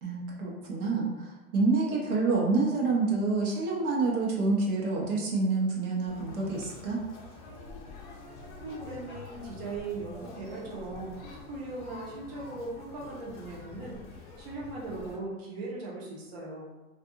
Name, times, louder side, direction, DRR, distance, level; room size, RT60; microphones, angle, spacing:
voice 1, 0.0-7.0, right 3 dB, 75° right, -3 dB, 0.9 m, -28 dB
Conversation, 6.1-15.2, left 2 dB, 35° left, 0.5 m, -47 dB
voice 2, 8.6-11.2 11.5-16.7, right 2 dB, 45° right, -5 dB, 0.8 m, -39 dB
2.5 x 2.5 x 2.5 m, 1.1 s
hypercardioid pair, 145°, 45 cm